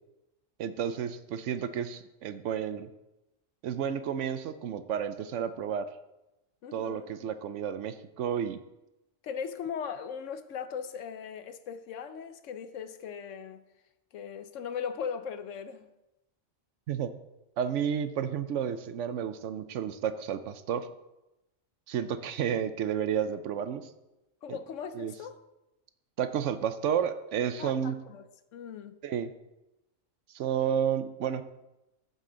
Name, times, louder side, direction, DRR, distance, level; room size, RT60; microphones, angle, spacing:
voice 1, 0.6-2.9 3.6-5.9 6.7-8.6 16.9-17.1 17.6-20.9 21.9-23.9 24.5-24.6 25.0-25.1 26.2-28.0 29.0-29.3 30.3-31.4, right 8 dB, 70° right, 0.9 m, -31 dB
voice 2, 6.6-7.2 9.2-13.6 14.1-15.9 24.4-25.4 27.6-28.3 28.5-29.0, left 7 dB, 75° left, 1.0 m, -38 dB
14.5 x 5.5 x 3.8 m
omnidirectional pair, 1.3 m